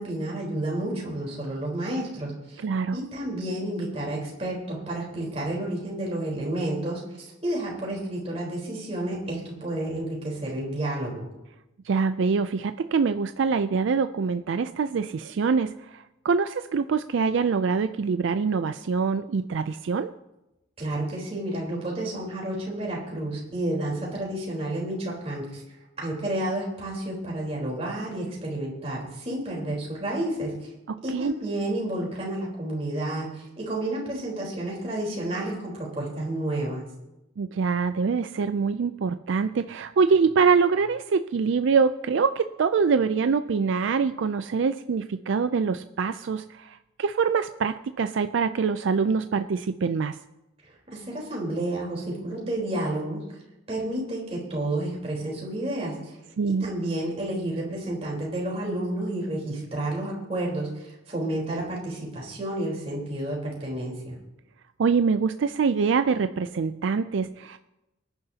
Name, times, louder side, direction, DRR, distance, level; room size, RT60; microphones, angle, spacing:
voice 1, 0.0-2.6 2.9-11.3 20.8-25.6 26.0-30.7 31.0-36.8 50.9-53.2 53.7-56.2 56.4-64.2, right 1 dB, 30° right, -3 dB, 3.9 m, -30 dB
voice 2, 2.6-3.0 11.8-20.1 30.9-31.3 37.4-50.2 56.4-56.7 64.8-67.6, right 5 dB, 70° right, 10 dB, 0.4 m, -24 dB
23.5 x 10.5 x 2.8 m, 0.95 s
head